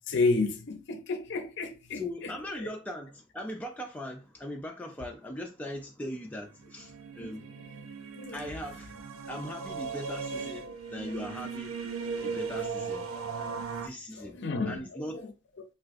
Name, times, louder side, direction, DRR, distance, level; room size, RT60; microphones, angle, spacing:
voice 1, 0.1-2.3 7.2-7.3 8.2-8.3 13.3-13.6 14.2-14.8, left 3 dB, 55° left, 0.5 m, -31 dB
voice 2, 1.9-7.4 8.3-8.9 9.3-11.7 12.2-13.1 13.8-14.4 14.6-15.3, left 1 dB, 5° left, 0.3 m, -39 dB
sound 1, 6.6-13.9, right 5 dB, 70° right, 0.4 m, -37 dB
3.5 x 2.3 x 2.5 m
head